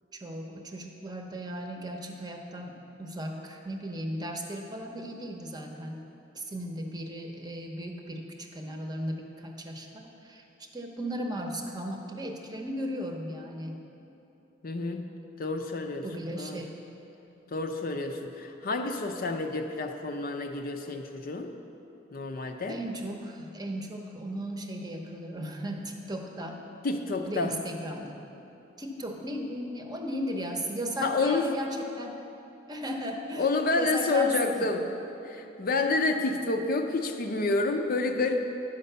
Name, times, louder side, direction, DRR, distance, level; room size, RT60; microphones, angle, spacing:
voice 1, 0.1-6.0 6.4-10.4 10.7-13.8 16.0-16.8 22.7-26.6 27.3-28.1 28.8-32.2 32.7-34.7, right 1 dB, 20° right, 2 dB, 0.8 m, -36 dB
voice 2, 14.6-15.0 15.4-16.0 16.4-16.6 17.5-21.5 22.1-22.8 26.8-27.5 31.0-31.5 33.4-34.8 35.2-38.4, left 3 dB, 50° left, 4 dB, 0.6 m, -29 dB
10.0 x 5.2 x 6.7 m, 3.0 s
head